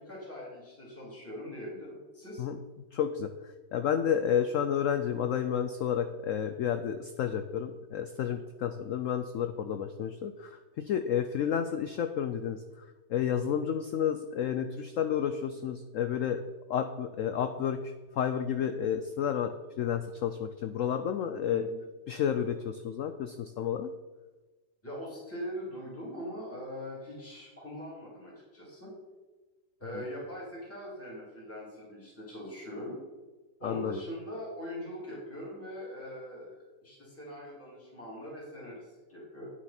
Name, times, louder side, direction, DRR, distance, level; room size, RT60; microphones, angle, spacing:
voice 1, 0.0-2.5 21.5-21.8 24.8-28.9 29.8-33.0 33.6-39.5, equal, 5° left, -6 dB, 3.1 m, -42 dB
voice 2, 2.9-3.3 3.7-12.6 13.1-16.4 16.7-19.5 19.8-21.7 22.1-23.9 29.9-30.0 33.6-34.0, left 8 dB, 75° left, 8 dB, 0.7 m, -31 dB
9.3 x 7.3 x 4.3 m, 1.2 s
omnidirectional pair, 1.9 m